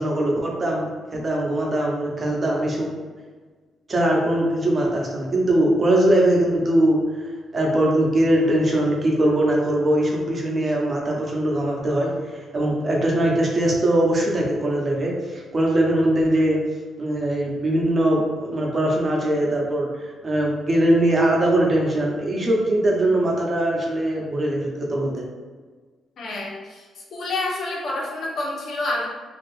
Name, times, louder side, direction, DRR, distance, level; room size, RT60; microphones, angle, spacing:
voice 1, 0.0-2.9 3.9-7.0 7.5-16.6 17.0-25.2, right 1 dB, 35° right, -2 dB, 0.9 m, -21 dB
voice 2, 26.2-26.8 27.1-29.1, left 2 dB, 65° left, -2 dB, 0.8 m, -28 dB
2.8 x 2.7 x 3.3 m, 1.4 s
supercardioid pair, 65°, 0 cm